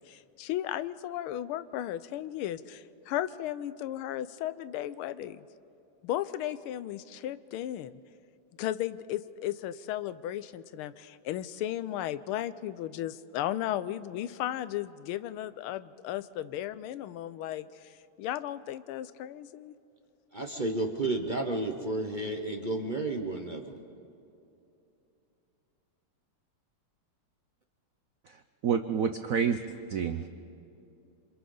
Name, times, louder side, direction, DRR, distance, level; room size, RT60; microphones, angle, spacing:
voice 1, 0.0-5.4 6.0-7.9 8.6-19.7, left 12 dB, 90° left, 15 dB, 1.5 m, -35 dB
voice 2, 20.3-23.8, right 2 dB, 35° right, 3 dB, 0.7 m, -32 dB
voice 3, 28.3-29.6 29.9-30.3, right 7 dB, 75° right, 8 dB, 0.7 m, -29 dB
28.0 x 26.0 x 3.9 m, 2.8 s
omnidirectional pair, 2.3 m